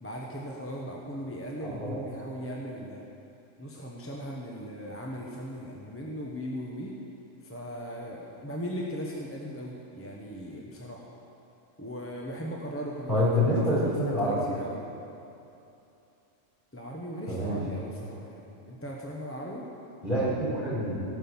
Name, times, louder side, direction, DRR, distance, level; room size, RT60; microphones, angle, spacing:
voice 1, 0.0-3.1 3.6-7.0 7.4-11.1 11.8-14.8 16.7-19.6, equal, 10° left, -3 dB, 0.9 m, -38 dB
voice 2, 1.6-2.0 13.1-14.4 17.3-17.6 20.0-21.0, equal, 40° left, -7 dB, 4.0 m, -26 dB
17.5 x 6.1 x 7.2 m, 2.8 s
omnidirectional pair, 1.3 m